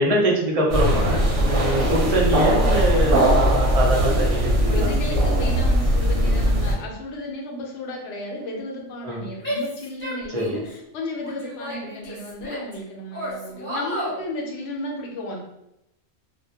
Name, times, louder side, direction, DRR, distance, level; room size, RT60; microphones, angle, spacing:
voice 1, 0.0-5.0 9.0-9.3 10.3-10.6, right 1 dB, 50° right, -3 dB, 0.4 m, -24 dB
sound 1, 0.7-6.7, equal, 80° right, 1.0 m, -20 dB
voice 2, 4.7-15.4, left 1 dB, 70° left, 0 dB, 0.8 m, -33 dB
Female speech woman speaking / Yell, 9.4-10.7 11.2-12.7 13.1-14.2, equal, 10° left, 0.9 m, -32 dB
2.1 x 2.1 x 2.8 m, 0.84 s
omnidirectional pair, 1.2 m